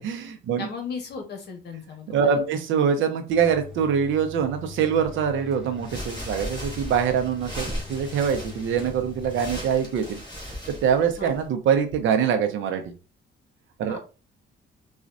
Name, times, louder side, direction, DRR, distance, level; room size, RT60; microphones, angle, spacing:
voice 1, 0.0-0.7 2.1-10.2 10.5-10.6 10.8-12.8 13.8-14.0, right 7 dB, 80° right, 6 dB, 0.7 m, -24 dB
voice 2, 0.6-2.6 11.2-11.3 13.9-14.0, left 5 dB, 55° left, 3 dB, 1.3 m, -36 dB
sound 1, 3.3-12.0, left 6 dB, ahead, 1.4 m, -43 dB
sound 2, 5.8-11.5, equal, 20° left, 1.5 m, -37 dB
4.2 x 2.4 x 2.5 m, 0.32 s
cardioid pair, 90°, 20 cm